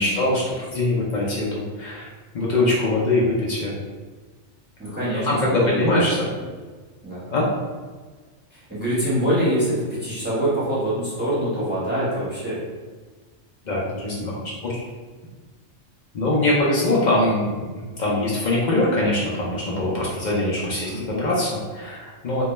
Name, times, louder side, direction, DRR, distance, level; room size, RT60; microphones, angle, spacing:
voice 1, 0.0-2.1 2.3-3.8 5.2-6.3 7.3-7.5 13.6-14.8 16.1-22.4, left 2 dB, 60° left, -5 dB, 0.5 m, -23 dB
voice 2, 4.8-6.0 6.4-6.5 7.0-7.2 8.5-12.6 20.7-21.0, right 1 dB, 10° right, -10 dB, 0.8 m, -25 dB
2.2 x 2.1 x 3.0 m, 1.4 s
omnidirectional pair, 1.2 m